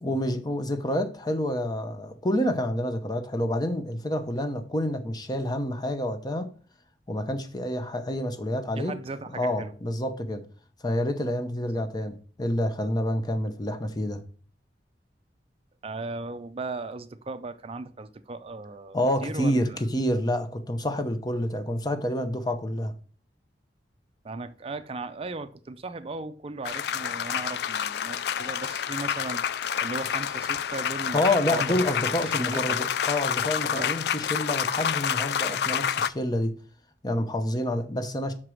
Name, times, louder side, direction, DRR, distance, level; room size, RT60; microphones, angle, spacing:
voice 1, 0.0-6.5 7.1-8.9 9.4-10.4 10.8-14.2 18.9-22.9 31.1-36.5 37.0-38.3, left 1 dB, 25° left, 0.7 m, -28 dB
voice 2, 8.8-9.7 11.8-11.9 15.8-19.8 24.2-29.4 29.8-31.2 31.5-31.8 32.2-32.8 33.7-33.9, right 3 dB, 35° right, 0.4 m, -37 dB
sound 1, 26.6-36.1, left 8 dB, 65° left, 0.3 m, -28 dB
5.9 x 4.7 x 6.2 m
head